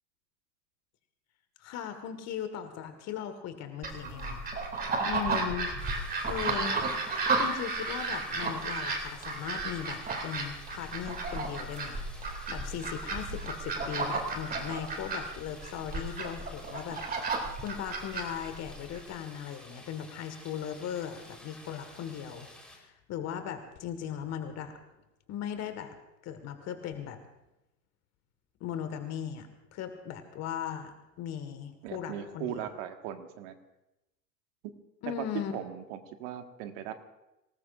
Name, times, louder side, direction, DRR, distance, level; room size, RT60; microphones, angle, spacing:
voice 1, 1.6-4.5 5.0-5.7 6.0-6.8 7.3-12.0 12.5-24.7 25.3-26.0 26.2-27.2 28.6-32.7 35.0-35.5, left 9 dB, 30° left, 8 dB, 1.7 m, -38 dB
sound 1, 3.8-19.0, right 3 dB, 20° right, 2.6 m, -33 dB
Waterfall Small B, 5.8-22.8, left 1 dB, ahead, 4.0 m, -52 dB
voice 2, 31.8-33.5 35.2-35.3 35.5-36.9, right 10 dB, 45° right, 7 dB, 1.7 m, -39 dB
25.5 x 18.5 x 2.5 m, 0.95 s
hypercardioid pair, 100°, 49 cm